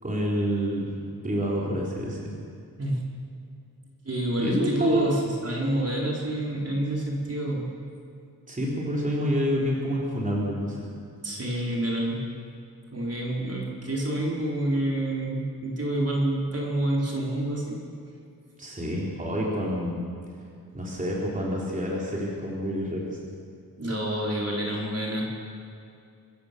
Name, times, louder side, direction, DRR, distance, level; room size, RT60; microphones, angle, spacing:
voice 1, 0.0-2.3 4.4-5.2 8.5-10.9 18.6-20.0 20.7-23.2, equal, 20° right, -4 dB, 4.0 m, -28 dB
voice 2, 4.0-7.6 11.2-12.2 12.9-17.8 23.8-25.3, right 1 dB, 40° right, -3 dB, 4.4 m, -28 dB
26.0 x 15.0 x 6.9 m, 2.4 s
wide cardioid pair, 120°, 36 cm